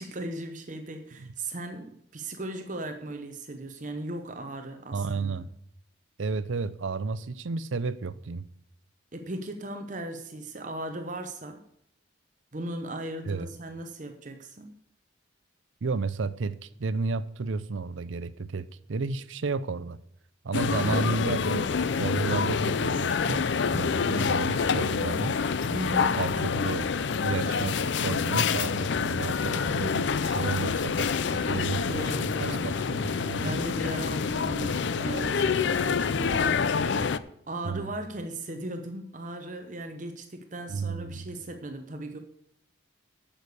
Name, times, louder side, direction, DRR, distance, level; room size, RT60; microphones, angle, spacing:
voice 1, 0.0-5.4 9.1-11.6 12.5-14.7 20.8-21.1 25.7-26.2 31.8-32.8 33.4-36.7 37.5-42.2, right 1 dB, 40° right, 0.8 m, -37 dB
voice 2, 4.9-5.5 6.2-8.4 13.3-13.5 15.8-20.0 20.4-21.7 22.0-23.5 23.7-25.4 26.2-26.9 27.2-33.6 37.6-37.8 40.7-41.3, right 4 dB, 75° right, 0.6 m, -32 dB
sound 1, 20.5-37.2, left 5 dB, 60° left, 0.4 m, -27 dB
8.7 x 6.8 x 8.3 m
head